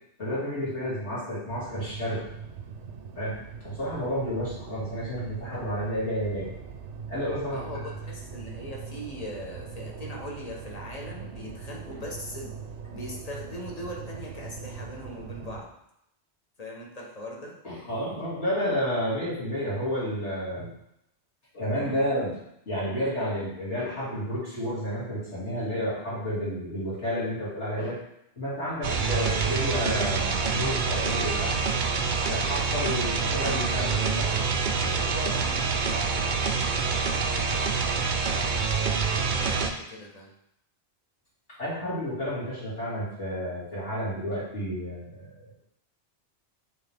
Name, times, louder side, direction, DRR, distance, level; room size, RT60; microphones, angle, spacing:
voice 1, 0.2-2.2 3.1-3.4 3.6-6.5 7.1-7.7 17.6-20.7 21.5-22.4 22.7-28.0 28.4-31.5 32.2-34.5 34.8-35.4 41.6-45.3, equal, 75° left, -10 dB, 3.1 m, -31 dB
sound 1, 1.5-15.6, right 6 dB, 75° right, 1.0 m, -41 dB
voice 2, 7.5-12.5 12.9-15.7 16.6-17.6 28.8-29.1 35.3-35.6 39.2-40.3, left 1 dB, 35° left, -2 dB, 1.3 m, -40 dB
sound 2, 28.8-39.7, right 5 dB, 50° right, 0.7 m, -26 dB
8.6 x 3.9 x 3.6 m, 0.79 s
omnidirectional pair, 1.2 m